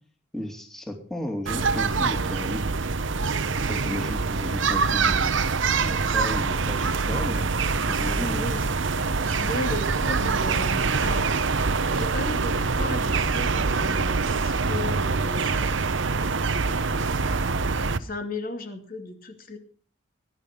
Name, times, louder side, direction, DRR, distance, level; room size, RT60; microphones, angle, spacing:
voice 1, 0.3-2.7 3.7-5.4 5.8-8.5, left 1 dB, ahead, 3 dB, 2.6 m, -34 dB
sound 1, 1.5-18.0, right 4 dB, 70° right, 0.9 m, -25 dB
voice 2, 8.3-8.7 9.2-11.3 11.9-15.9 16.4-19.6, left 1 dB, 45° left, 5 dB, 2.7 m, -36 dB
19.5 x 11.0 x 5.3 m, 0.43 s
head